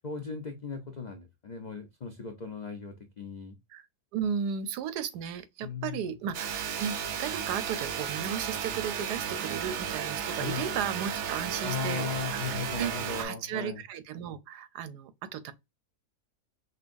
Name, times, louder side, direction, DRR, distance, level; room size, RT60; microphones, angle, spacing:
voice 1, 0.0-3.5 5.6-6.1 10.4-10.7 11.6-13.8, left 6 dB, 75° left, 0.4 m, -37 dB
voice 2, 4.1-12.1 12.3-15.5, right 8 dB, 90° right, 1.2 m, -35 dB
sound 1, 6.3-13.3, right 7 dB, 70° right, 0.7 m, -34 dB
5.3 x 2.2 x 2.5 m
omnidirectional pair, 1.7 m